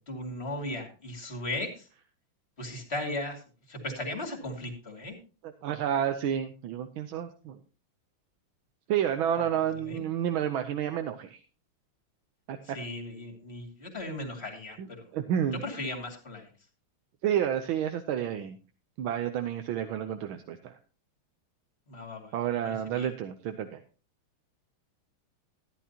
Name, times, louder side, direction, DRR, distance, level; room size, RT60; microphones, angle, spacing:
voice 1, 0.1-1.9 2.6-3.4 3.7-5.2 9.4-10.0 12.6-15.0 15.5-16.5 21.9-22.3 22.6-23.1, left 1 dB, 30° left, 2 dB, 2.7 m, -37 dB
voice 2, 5.6-7.6 8.9-11.4 12.5-12.6 14.8-14.9 15.1-15.6 17.2-18.6 19.0-20.8 22.3-23.8, right 9 dB, 80° right, 7 dB, 1.6 m, -30 dB
14.0 x 11.5 x 2.9 m, 0.35 s
omnidirectional pair, 2.2 m